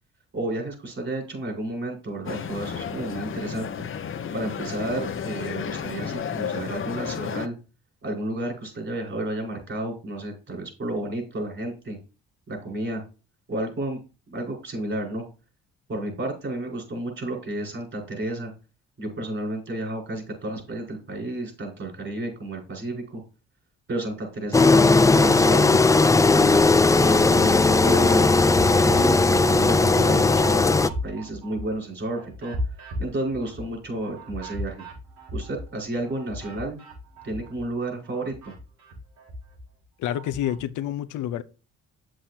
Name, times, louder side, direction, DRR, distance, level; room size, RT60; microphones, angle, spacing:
voice 1, 0.3-3.8 4.3-7.5 8.0-12.0 12.5-13.0 13.5-14.0 14.3-15.2 15.9-18.5 19.0-23.2 23.9-25.7 26.3-26.6 27.0-34.8 35.3-36.8 37.2-38.5, right 1 dB, 40° right, 5.0 m, -31 dB
sound 1, 2.2-7.5, left 7 dB, 45° left, 0.8 m, -32 dB
Engine, 24.5-30.9, left 3 dB, 10° left, 0.4 m, -17 dB
sound 2, 30.7-37.7 38.0-40.6, left 1 dB, 65° right, 4.3 m, -38 dB
voice 2, 40.0-41.4, left 11 dB, 80° left, 0.6 m, -28 dB
8.5 x 7.5 x 2.8 m
cardioid pair, 90°, 30 cm